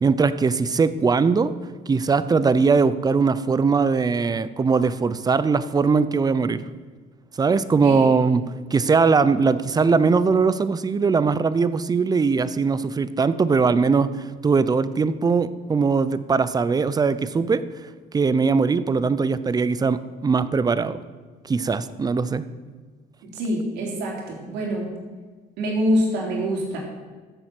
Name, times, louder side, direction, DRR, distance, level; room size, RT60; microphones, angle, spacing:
voice 1, 0.0-1.5 1.9-6.6 7.4-8.4 8.7-14.1 14.4-17.6 18.1-21.0 21.5-22.4, right 4 dB, 25° right, 15 dB, 0.6 m, -20 dB
voice 2, 23.3-24.9 25.6-26.8, equal, 90° right, -2 dB, 3.7 m, -25 dB
14.5 x 7.2 x 6.0 m, 1.5 s
cardioid pair, 110°, 17 cm